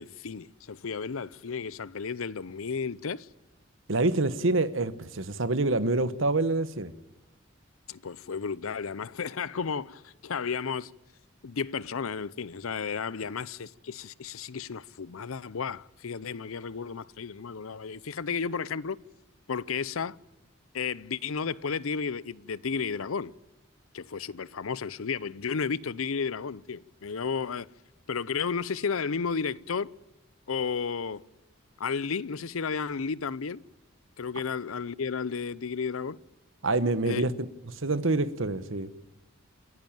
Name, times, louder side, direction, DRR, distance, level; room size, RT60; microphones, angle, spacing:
voice 1, 0.0-3.3 7.9-10.9 11.4-19.0 19.5-20.2 20.7-23.3 23.9-27.7 28.1-29.9 30.5-31.2 31.8-33.6 34.2-36.2 37.1-37.2, left 5 dB, 90° left, 0.6 m, -33 dB
voice 2, 3.9-6.9 36.6-37.3 37.6-38.9, right 2 dB, 70° right, 1.2 m, -26 dB
28.5 x 11.0 x 8.9 m
head